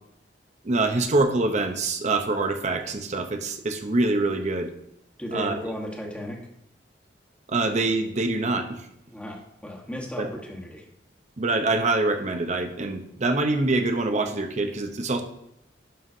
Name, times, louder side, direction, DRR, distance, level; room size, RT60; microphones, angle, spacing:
voice 1, 0.6-4.7 5.3-5.6 7.5-8.9 10.2-10.3 11.4-15.2, right 2 dB, 40° right, 6 dB, 0.8 m, -25 dB
voice 2, 5.2-6.4 9.1-10.8, equal, 5° left, -1 dB, 1.3 m, -35 dB
11.0 x 5.7 x 2.7 m, 0.78 s
head